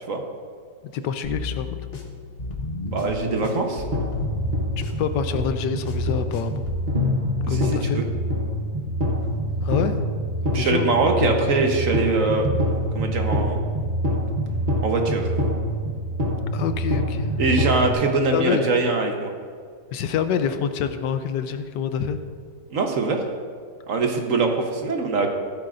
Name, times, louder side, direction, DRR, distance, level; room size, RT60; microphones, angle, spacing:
voice 1, 0.9-1.8 5.0-6.6 7.5-8.0 9.6-10.0 10.5-10.9 16.5-17.3 18.3-18.7 19.9-22.2, left 7 dB, 85° left, 10 dB, 1.3 m, -26 dB
sound 1, 1.2-6.9, left 2 dB, 40° left, 1.2 m, -33 dB
voice 2, 2.9-3.8 7.4-7.7 8.0-8.1 10.5-12.5 12.9-13.6 14.8-15.3 17.4-19.3 22.7-23.2 23.9-25.3, right 3 dB, 55° right, 3 dB, 1.3 m, -22 dB
sound 2, 3.9-17.9, equal, 30° right, 1.2 m, -25 dB
15.0 x 12.0 x 2.6 m, 2.1 s
omnidirectional pair, 1.8 m